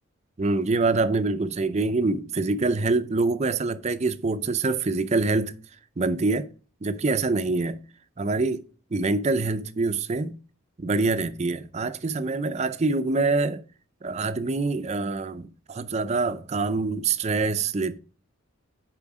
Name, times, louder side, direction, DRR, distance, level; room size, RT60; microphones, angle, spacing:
voice 1, 0.4-5.5 6.0-6.5 6.8-7.8 8.2-8.6 8.9-10.3 10.8-13.6 14.0-18.0, right 3 dB, 30° right, 0.5 m, -25 dB
7.1 x 5.0 x 4.9 m
head